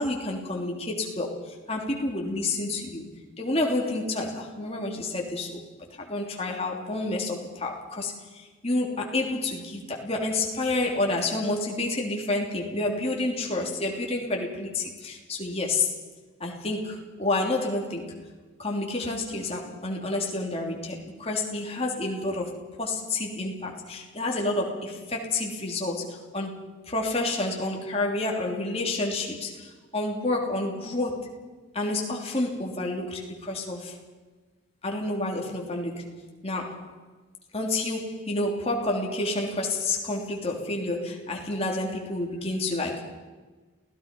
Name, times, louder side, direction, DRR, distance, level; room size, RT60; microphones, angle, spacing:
voice 1, 0.0-3.1 3.4-5.6 6.1-15.9 16.4-18.1 18.6-26.6 26.9-31.3 31.7-34.0 34.8-36.1 36.4-36.9 37.5-43.2, left 2 dB, 30° left, 0 dB, 3.2 m, -29 dB
28.0 x 17.5 x 5.4 m, 1.3 s
head